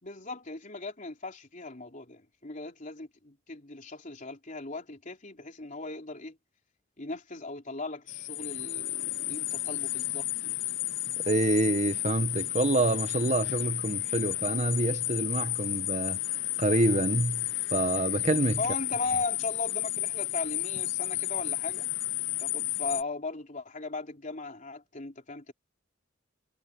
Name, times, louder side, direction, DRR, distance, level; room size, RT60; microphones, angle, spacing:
voice 1, 0.0-6.4 7.0-10.6 18.6-21.9 22.4-25.5, left 3 dB, 45° left, 3.5 m, -38 dB
sound 1, 8.1-23.0, left 17 dB, 70° left, 0.8 m, -32 dB
voice 2, 11.3-16.2 16.6-18.6, right 2 dB, 40° right, 1.5 m, -27 dB
head